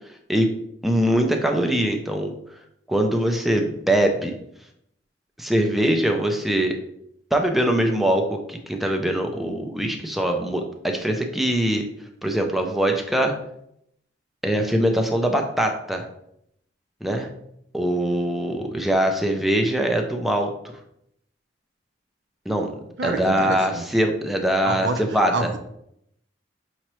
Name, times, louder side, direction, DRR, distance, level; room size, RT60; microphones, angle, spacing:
voice 1, 0.8-2.3 2.9-4.4 5.4-6.8 7.3-11.9 12.2-13.3 14.4-16.0 17.0-17.3 17.7-20.5 22.5-22.7 23.0-25.5, right 1 dB, ahead, 3 dB, 0.4 m, -22 dB
voice 2, 23.0-23.8 24.6-25.0 25.3-25.6, right 3 dB, 65° right, 6 dB, 0.5 m, -27 dB
5.5 x 3.0 x 3.0 m, 0.74 s
head